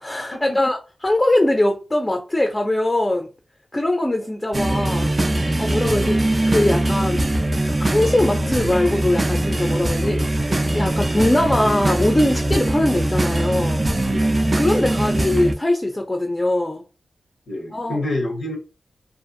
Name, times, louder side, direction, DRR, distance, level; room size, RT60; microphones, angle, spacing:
voice 1, 0.0-3.3 3.7-5.1 5.6-6.2 6.5-7.2 7.8-10.2 10.7-13.8 14.6-16.8 17.7-18.0, left 1 dB, 25° left, 0.4 m, -21 dB
sound 1, 4.5-15.5, right 1 dB, 35° right, 0.4 m, -21 dB
voice 2, 17.5-18.6, left 1 dB, 80° left, 0.6 m, -27 dB
2.5 x 2.4 x 2.5 m
cardioid pair, 60°, 0 cm